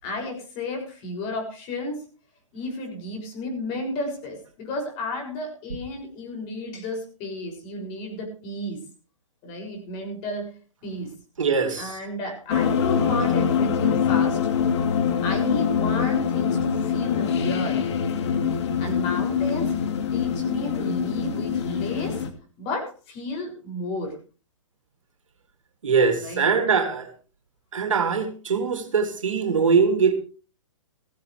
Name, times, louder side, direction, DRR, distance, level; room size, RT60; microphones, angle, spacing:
voice 1, 0.0-2.0 2.5-8.8 9.4-10.5 10.8-11.1 11.7-14.4 15.2-17.8 18.8-19.7 20.1-22.2 22.6-24.2 26.2-26.5, left 2 dB, 35° left, 6.8 m, -32 dB
voice 2, 11.4-12.0 25.8-27.1 27.7-30.1, right 5 dB, 80° right, 3.0 m, -22 dB
sound 1, 12.5-22.3, left 7 dB, 60° left, 2.3 m, -24 dB
16.0 x 16.0 x 3.4 m
hypercardioid pair, 130°, 16 cm